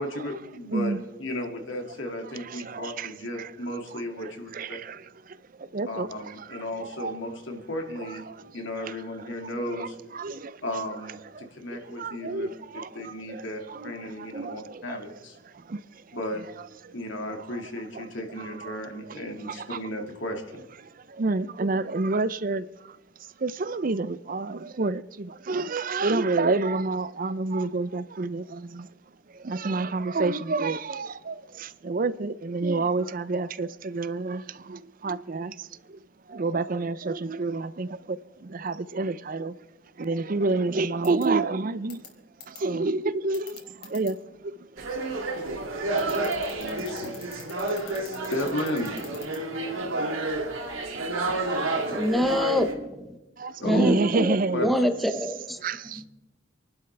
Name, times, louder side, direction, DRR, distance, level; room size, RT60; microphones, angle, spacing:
voice 1, 0.0-4.8 5.9-8.2 8.5-10.0 10.6-12.5 12.7-15.4 16.1-16.4 16.9-20.6 46.6-47.1 47.7-49.0 53.6-53.9 54.5-54.7, left 1 dB, 70° left, 2.3 m, -34 dB
voice 2, 2.4-3.5 4.2-7.2 8.0-8.4 8.8-9.0 9.2-10.6 11.3-15.0 15.5-16.2 16.8-16.9 17.3-17.6 17.9-18.0 18.4-18.8 19.1-19.8 20.9-23.0 23.4-28.9 29.3-36.0 36.3-39.5 40.0-42.1 42.5-45.2 45.7-45.9 53.4-54.8 55.6-56.0, right 3 dB, 45° right, 0.5 m, -29 dB
sound 1, 41.0-41.2 41.9-42.1 42.4-42.6 43.3-44.1 46.0-49.4, left 9 dB, 55° left, 3.4 m, -43 dB
sound 2, 44.8-52.7, right 2 dB, 90° right, 2.7 m, -30 dB
voice 3, 51.9-53.2 53.6-55.6, left 1 dB, ahead, 0.9 m, -26 dB
27.5 x 11.5 x 3.4 m
head